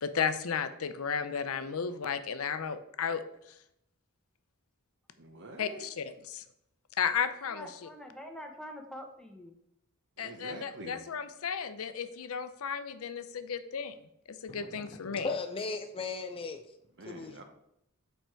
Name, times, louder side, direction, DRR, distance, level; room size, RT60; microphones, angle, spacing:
voice 1, 0.0-3.2 5.6-6.4 7.0-7.9 10.2-14.0 14.3-15.3, left 6 dB, 70° left, 0.6 m, -34 dB
voice 2, 5.2-5.9 10.2-11.0 17.0-17.4, right 2 dB, 55° right, 1.1 m, -46 dB
voice 3, 7.5-9.5, equal, 5° left, 0.8 m, -45 dB
voice 4, 14.5-16.6 17.1-17.4, left 4 dB, 25° left, 0.4 m, -37 dB
6.7 x 4.5 x 4.5 m
head